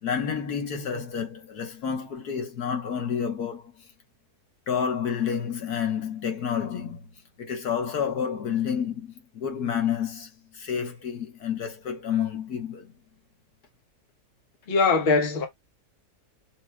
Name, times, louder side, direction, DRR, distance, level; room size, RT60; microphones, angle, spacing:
voice 1, 0.0-3.9 4.7-7.1 7.4-12.9, left 7 dB, 70° left, 1.6 m, -29 dB
voice 2, 14.7-15.5, left 4 dB, 40° left, 1.3 m, -21 dB
7.4 x 3.0 x 2.2 m
omnidirectional pair, 1.7 m